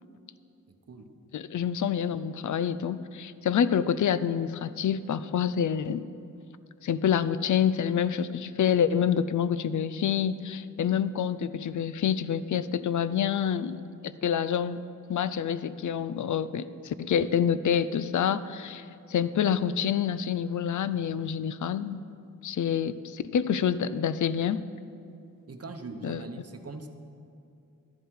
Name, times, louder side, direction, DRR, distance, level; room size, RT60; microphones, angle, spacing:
voice 1, 1.3-6.1 6.8-13.8 14.2-14.8 15.1-22.0 22.4-24.6 26.0-26.2, left 8 dB, 60° left, 15 dB, 0.5 m, -27 dB
voice 2, 25.5-26.9, right 3 dB, 45° right, 5 dB, 1.0 m, -41 dB
12.0 x 11.5 x 4.8 m, 2.6 s
wide cardioid pair, 135°, 34 cm